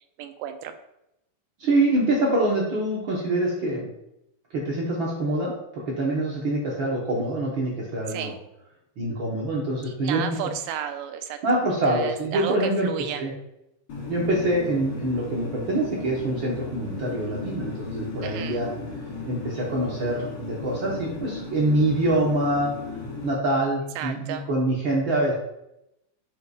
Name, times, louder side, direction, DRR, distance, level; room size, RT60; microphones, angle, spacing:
voice 1, 0.2-0.7 8.1-8.4 9.9-11.4 11.9-13.2 18.2-18.6 24.0-24.5, right 9 dB, 85° right, 8 dB, 2.2 m, -32 dB
voice 2, 1.6-3.9 4.5-8.3 9.0-10.2 11.4-12.9 13.2-13.3 14.1-18.7 19.3-22.7 23.2-25.3, right 1 dB, 70° right, -4 dB, 1.2 m, -25 dB
sound 1, 13.9-23.3, left 3 dB, 80° left, 3.4 m, -36 dB
8.8 x 5.3 x 2.4 m, 0.84 s
omnidirectional pair, 3.8 m